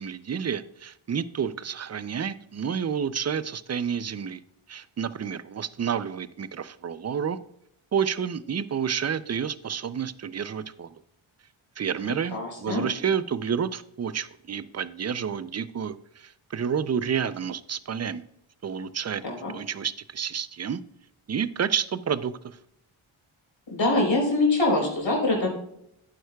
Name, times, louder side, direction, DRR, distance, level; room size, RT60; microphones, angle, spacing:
voice 1, 0.0-4.4 4.7-7.4 7.9-10.9 11.8-18.2 18.6-19.2 19.5-20.8 21.3-22.6, right 7 dB, 35° right, 15 dB, 0.5 m, -30 dB
voice 2, 12.3-12.8 19.2-19.5 23.7-25.5, left 2 dB, 65° left, -1 dB, 3.9 m, -24 dB
11.0 x 9.1 x 2.3 m, 0.74 s
cardioid pair, 60°, 48 cm